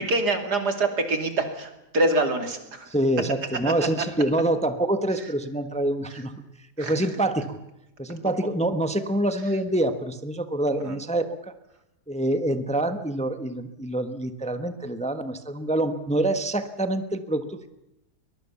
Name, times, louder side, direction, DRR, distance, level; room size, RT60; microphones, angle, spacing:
voice 1, 0.0-2.9 3.6-4.0 5.2-5.3 6.1-6.2 6.8-7.1 10.8-11.0, right 2 dB, 85° right, 6 dB, 3.2 m, -26 dB
voice 2, 2.9-6.3 6.8-7.6 8.0-11.5 12.1-17.7, right 1 dB, 5° left, 9 dB, 1.0 m, -26 dB
22.5 x 21.0 x 7.1 m, 0.89 s
omnidirectional pair, 1.7 m